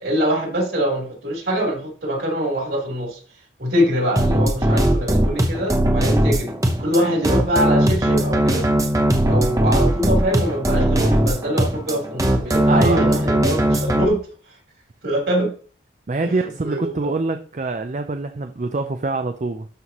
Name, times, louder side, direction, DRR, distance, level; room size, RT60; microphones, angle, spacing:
voice 1, 0.0-3.2 3.6-6.5 6.8-8.6 9.2-14.2 15.0-15.5 16.2-16.3 16.6-17.1, equal, 60° right, 0 dB, 3.6 m, -23 dB
sound 1, 4.2-14.0, right 1 dB, 20° right, 0.9 m, -19 dB
voice 2, 12.7-13.2 16.1-19.7, right 3 dB, 40° right, 7 dB, 0.5 m, -24 dB
12.5 x 5.5 x 3.0 m, 0.41 s
head